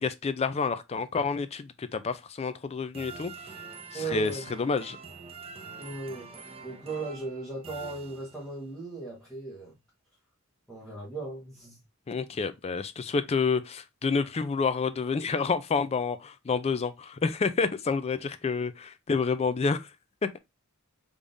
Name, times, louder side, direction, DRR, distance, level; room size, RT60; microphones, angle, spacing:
voice 1, 0.0-3.3 3.9-5.0 12.1-19.9, left 5 dB, 30° left, 0.4 m, -29 dB
sound 1, 2.9-8.7, right 4 dB, 30° right, 0.6 m, -45 dB
voice 2, 3.9-4.4 5.8-6.3 6.6-9.7 10.7-11.8, right 3 dB, 5° left, 1.2 m, -37 dB
3.5 x 3.4 x 2.5 m
head